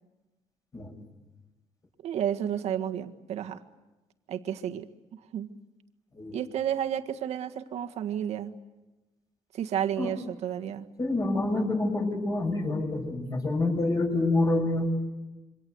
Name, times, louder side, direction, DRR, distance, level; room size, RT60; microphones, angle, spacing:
voice 1, 2.0-3.6 4.3-4.9 5.1-5.5 6.3-8.5 9.5-10.8, right 9 dB, 70° right, 6 dB, 1.7 m, -31 dB
voice 2, 11.0-14.9, left 2 dB, 30° left, 3 dB, 7.1 m, -27 dB
27.5 x 24.0 x 8.1 m, 1.1 s
cardioid pair, 120°, 12 cm